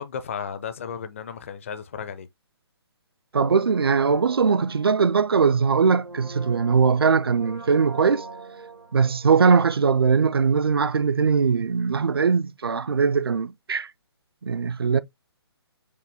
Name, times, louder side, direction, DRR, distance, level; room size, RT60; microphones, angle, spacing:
voice 1, 0.0-2.3, left 7 dB, 30° left, 0.4 m, -34 dB
voice 2, 3.3-8.2 8.9-13.9 14.4-15.0, right 5 dB, 60° right, 0.4 m, -21 dB
Brass instrument, 3.5-10.4 10.6-10.7, right 3 dB, 85° right, 1.1 m, -43 dB
4.9 x 2.6 x 3.4 m
figure-of-eight pair, 135°, 14 cm